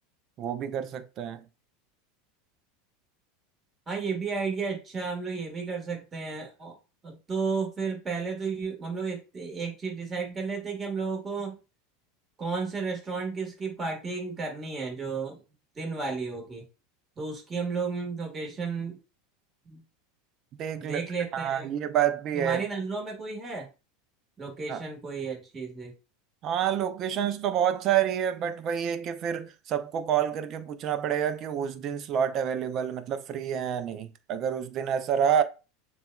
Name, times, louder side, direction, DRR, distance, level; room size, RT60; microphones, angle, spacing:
voice 1, 0.4-1.4 20.6-21.0 21.3-22.6 24.7-24.8 26.4-35.4, right 9 dB, 45° right, 0.5 m, -28 dB
voice 2, 3.9-6.8 7.0-11.6 12.4-15.4 15.7-16.7 17.2-19.0 19.6-19.8 20.7-21.7 22.3-23.7 24.4-25.9, right 4 dB, 25° right, 1.6 m, -33 dB
6.8 x 2.4 x 2.3 m
hypercardioid pair, 90°, 0 cm